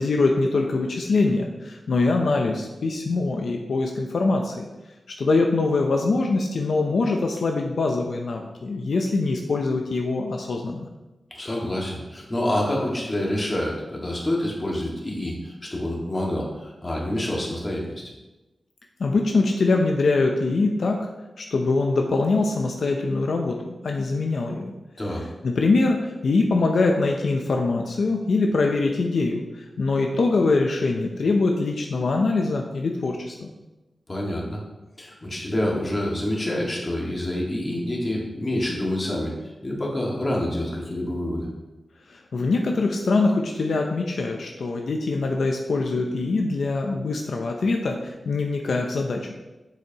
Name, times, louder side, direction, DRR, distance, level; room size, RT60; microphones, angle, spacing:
voice 1, 0.0-4.7 5.2-10.9 19.0-21.0 21.4-24.7 25.4-29.4 29.8-33.5 42.1-49.3, left 3 dB, 80° left, 2 dB, 0.6 m, -23 dB
voice 2, 11.3-18.0 25.0-25.2 34.1-34.6 35.0-39.3 39.6-41.5, left 1 dB, 30° left, -2 dB, 1.9 m, -27 dB
8.1 x 6.8 x 3.0 m, 1.1 s
wide cardioid pair, 100°, 0 cm